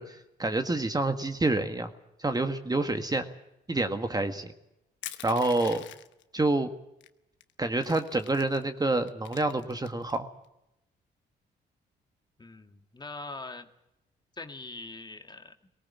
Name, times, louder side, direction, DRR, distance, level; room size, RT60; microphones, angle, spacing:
voice 1, 0.0-1.9 2.2-3.3 3.7-4.5 5.2-5.8 6.3-6.7 7.6-10.3, right 2 dB, 20° right, 7 dB, 1.7 m, -28 dB
Crushing, 5.0-6.2 7.0-7.1 7.4-8.6 9.1-10.2, left 12 dB, 80° left, 1.0 m, -44 dB
voice 2, 12.4-13.7 14.3-15.5, left 3 dB, 20° left, 6 dB, 1.9 m, -42 dB
19.0 x 18.5 x 8.5 m, 0.88 s
cardioid pair, 75°, 19 cm